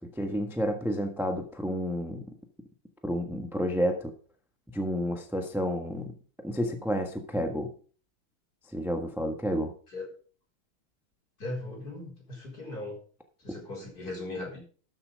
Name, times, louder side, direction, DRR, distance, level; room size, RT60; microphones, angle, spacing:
voice 1, 0.2-2.3 3.0-4.1 4.7-6.1 6.4-7.7 8.7-9.7, equal, ahead, 5 dB, 0.9 m, -30 dB
voice 2, 11.4-13.0 13.4-14.6, left 2 dB, 45° left, -2 dB, 4.7 m, -38 dB
13.0 x 7.1 x 5.2 m, 0.41 s
omnidirectional pair, 2.4 m